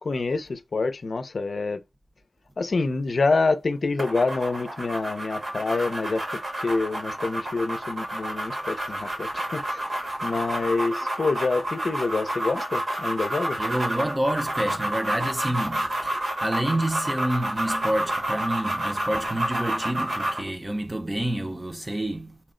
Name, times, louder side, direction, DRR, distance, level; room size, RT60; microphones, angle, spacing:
voice 1, 0.0-1.8 2.6-13.6, left 3 dB, 70° left, 0.5 m, -27 dB
sound 1, 4.0-20.5, right 1 dB, 65° right, 1.1 m, -30 dB
voice 2, 13.6-22.4, right 1 dB, 20° right, 0.6 m, -28 dB
4.2 x 2.1 x 3.7 m
wide cardioid pair, 80°, 0 cm